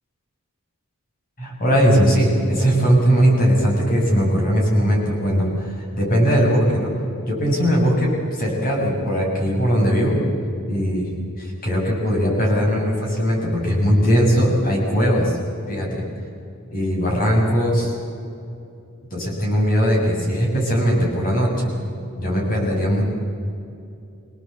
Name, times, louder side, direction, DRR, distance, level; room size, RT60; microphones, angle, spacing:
voice 1, 1.4-6.9 7.3-10.2 10.7-11.1 11.4-15.4 15.7-16.0 16.7-18.0 19.1-21.7 22.2-23.0, equal, 40° left, -2 dB, 7.1 m, -19 dB
25.0 x 18.0 x 8.1 m, 2.6 s
head